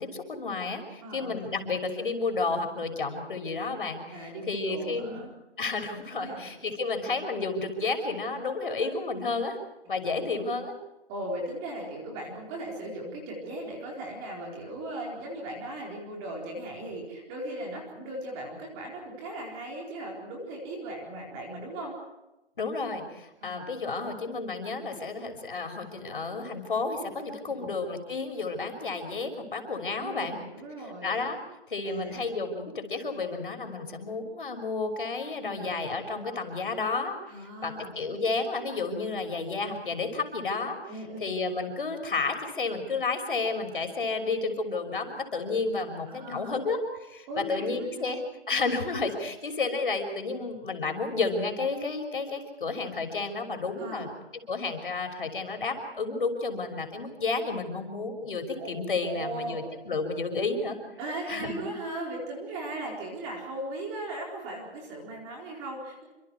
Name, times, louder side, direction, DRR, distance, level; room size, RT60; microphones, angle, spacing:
voice 1, 0.0-5.1 5.6-9.6 9.9-10.8 22.6-30.4 31.0-31.4 31.7-40.8 41.2-48.2 48.5-54.1 54.5-60.8 61.3-61.6, left 3 dB, 50° left, 4 dB, 6.1 m, -31 dB
voice 2, 1.0-1.6 4.1-5.3 6.1-6.5 10.1-10.2 11.1-21.9 23.4-23.7 25.9-26.2 27.4-27.7 30.0-31.2 31.8-32.3 35.4-35.7 37.3-38.0 40.9-41.3 46.1-46.6 47.3-48.1 53.8-54.1 58.6-58.7 59.0-59.7 61.0-66.0, right 1 dB, 10° right, -1 dB, 4.2 m, -38 dB
29.0 x 27.0 x 4.8 m, 0.97 s
hypercardioid pair, 175°, 34 cm